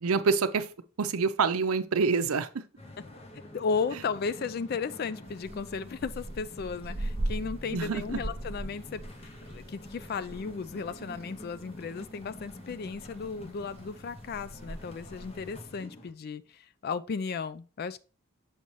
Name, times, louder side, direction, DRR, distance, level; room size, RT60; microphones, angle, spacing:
voice 1, 0.0-0.7 1.0-2.5 7.7-8.2, right 5 dB, 80° right, 0.6 m, -26 dB
sound 1, 2.8-16.1, left 1 dB, 30° left, 0.7 m, -48 dB
voice 2, 3.5-9.0 9.5-18.0, left 5 dB, 45° left, 0.3 m, -35 dB
sound 2, 5.2-15.7, right 1 dB, 25° right, 0.5 m, -41 dB
6.4 x 5.4 x 3.0 m
head